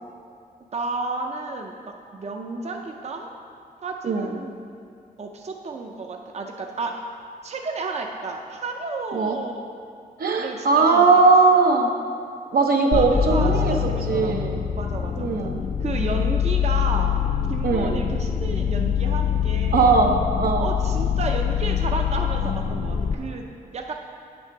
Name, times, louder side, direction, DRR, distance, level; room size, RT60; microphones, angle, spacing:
voice 1, 0.7-1.8 2.1-3.3 3.8-4.5 5.2-7.0 7.4-9.5 10.4-11.1 12.9-15.5 15.8-17.2 17.5-19.9 20.6-23.5 23.7-23.9, right 3 dB, 45° right, 2 dB, 0.6 m, -32 dB
voice 2, 4.0-4.4 9.1-9.4 10.2-11.9 12.5-14.6 15.2-15.6 17.6-18.0 19.7-20.7, right 4 dB, 80° right, 2 dB, 0.8 m, -19 dB
sound 1, 12.9-23.2, left 8 dB, 55° left, 0.5 m, -24 dB
8.6 x 5.7 x 4.6 m, 2.3 s
wide cardioid pair, 100°, 15 cm